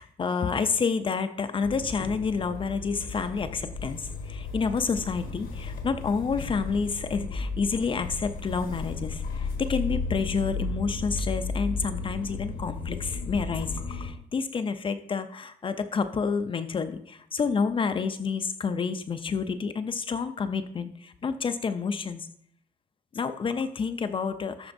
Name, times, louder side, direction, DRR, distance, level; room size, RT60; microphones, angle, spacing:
voice 1, 0.0-22.3 23.1-24.7, left 5 dB, 35° left, 9 dB, 0.5 m, -29 dB
Motor vehicle (road) / Engine starting, 1.6-14.1, left 3 dB, 80° left, 1.3 m, -34 dB
12.0 x 4.3 x 2.6 m, 0.65 s
cardioid pair, 105°, 15 cm